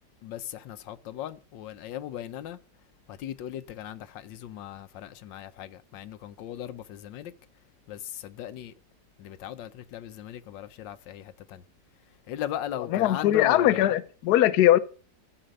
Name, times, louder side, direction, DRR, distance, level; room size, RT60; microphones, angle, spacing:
voice 1, 0.2-2.6 3.1-7.3 7.9-8.7 9.2-11.6 12.3-13.9, left 11 dB, 90° left, 1.5 m, -38 dB
voice 2, 12.9-14.8, left 13 dB, 65° left, 1.1 m, -20 dB
13.0 x 5.1 x 6.4 m
omnidirectional pair, 1.9 m